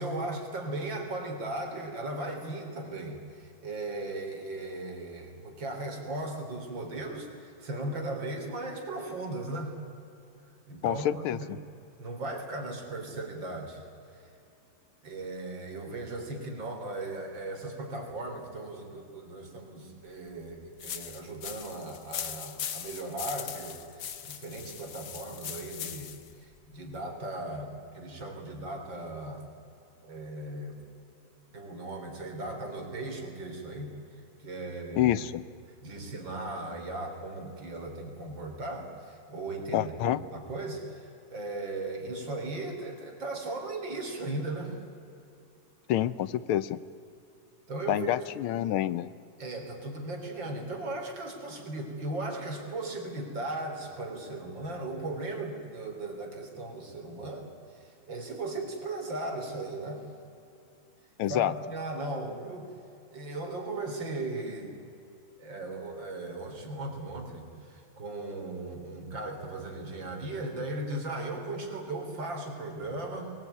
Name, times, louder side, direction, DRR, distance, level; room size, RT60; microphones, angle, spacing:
voice 1, 0.0-9.7 10.7-11.6 12.0-13.8 14.1-14.2 15.0-26.1 26.4-29.4 30.0-30.8 31.5-33.9 34.4-35.1 35.8-44.8 47.7-48.2 49.4-60.0 61.3-62.7 63.1-64.8 65.4-73.3, right 2 dB, 60° right, 3 dB, 4.3 m, -37 dB
voice 2, 10.8-11.4 35.0-35.4 39.7-40.2 45.9-46.8 47.9-49.1 61.2-61.5, left 12 dB, 90° left, 17 dB, 1.7 m, -27 dB
sound 1, 20.8-26.3, left 8 dB, 55° left, 1.6 m, -40 dB
22.5 x 20.5 x 9.4 m, 2.6 s
omnidirectional pair, 2.3 m